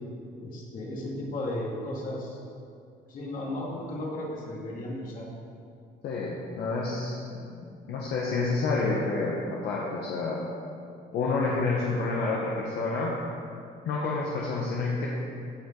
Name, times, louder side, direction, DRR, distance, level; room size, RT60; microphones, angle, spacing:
voice 1, 0.4-2.4 3.1-5.3, left 1 dB, 55° left, -3 dB, 2.4 m, -35 dB
voice 2, 6.0-7.1 7.5-10.4 11.1-13.1 13.8-15.1, left 3 dB, 70° left, -4 dB, 1.2 m, -29 dB
15.5 x 5.4 x 3.9 m, 2.4 s
cardioid pair, 110°, 17 cm